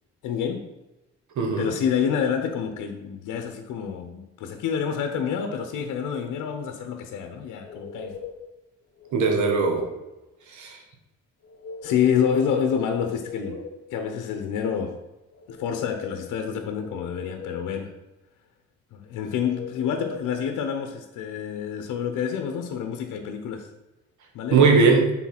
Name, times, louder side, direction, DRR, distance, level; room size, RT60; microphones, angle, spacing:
voice 1, 0.2-0.7 1.6-8.2 11.8-13.6 13.9-15.0 15.5-17.9 18.9-23.7 24.3-24.6, left 7 dB, 85° left, 5 dB, 0.8 m, -28 dB
voice 2, 1.4-1.7 9.1-9.9 10.5-10.8 24.5-25.1, right 4 dB, 75° right, 3 dB, 1.5 m, -19 dB
sound 1, 7.6-8.5 9.0-9.8 11.4-12.4 12.8-13.9 15.3-16.3 16.8-17.8 19.4-20.4, left 7 dB, 55° left, 1.0 m, -39 dB
7.1 x 3.9 x 5.9 m, 1.0 s
cardioid pair, 90°, 30 cm